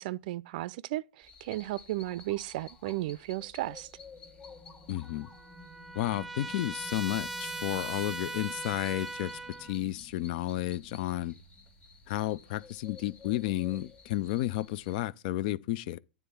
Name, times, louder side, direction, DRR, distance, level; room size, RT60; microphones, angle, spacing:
voice 1, 0.0-3.9, right 17 dB, 50° right, 0.4 m, -35 dB
sound 1, 1.2-15.0, left 3 dB, 20° left, 1.4 m, -52 dB
voice 2, 4.9-5.3 6.0-9.3 9.6-11.4 12.1-16.0, left 15 dB, 50° left, 0.4 m, -32 dB
Trumpet, 5.0-9.8, right 3 dB, 5° right, 0.6 m, -40 dB
9.3 x 3.5 x 6.9 m
hypercardioid pair, 105°, 6 cm